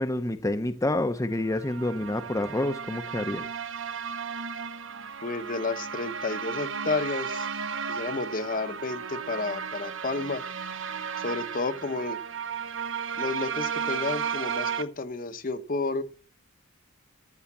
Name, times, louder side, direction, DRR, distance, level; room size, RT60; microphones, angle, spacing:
voice 1, 0.0-3.4, left 1 dB, 15° left, 0.7 m, -28 dB
sound 1, 1.5-14.8, right 6 dB, 65° right, 1.0 m, -34 dB
voice 2, 5.2-7.5 7.9-10.4 11.2-12.2 13.2-16.0, left 3 dB, 45° left, 0.9 m, -31 dB
14.5 x 6.4 x 7.3 m
head